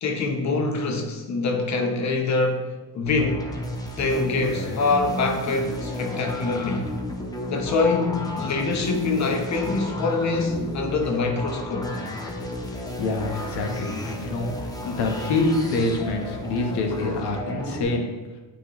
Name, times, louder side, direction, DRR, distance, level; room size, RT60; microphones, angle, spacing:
voice 1, 0.0-3.5 3.9-6.9 7.5-11.9, left 3 dB, 40° left, 0.8 m, -24 dB
sound 1, 3.1-17.8, left 1 dB, 10° left, 0.5 m, -33 dB
voice 2, 12.7-18.1, left 2 dB, 60° left, 1.1 m, -26 dB
8.9 x 4.1 x 3.0 m
cardioid pair, 155°, 45 cm